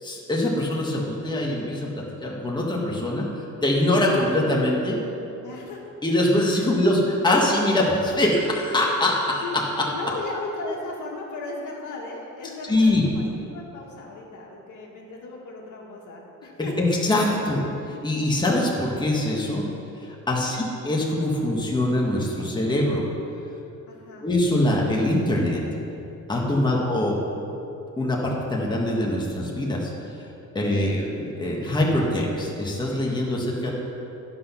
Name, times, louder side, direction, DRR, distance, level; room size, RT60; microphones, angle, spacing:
voice 1, 0.0-5.0 6.0-9.4 9.8-9.9 12.7-13.1 16.8-19.6 20.0-23.0 24.2-25.6 26.3-27.1 28.0-29.9 30.5-33.7, left 1 dB, 15° left, -3 dB, 1.6 m, -23 dB
voice 2, 5.4-5.9 6.5-6.7 9.4-9.6 9.9-13.2 13.5-16.9 20.4-20.6 23.9-24.3 26.7-26.9, left 3 dB, 70° left, -2 dB, 2.0 m, -36 dB
11.0 x 6.1 x 5.7 m, 2.9 s
cardioid pair, 120°, 31 cm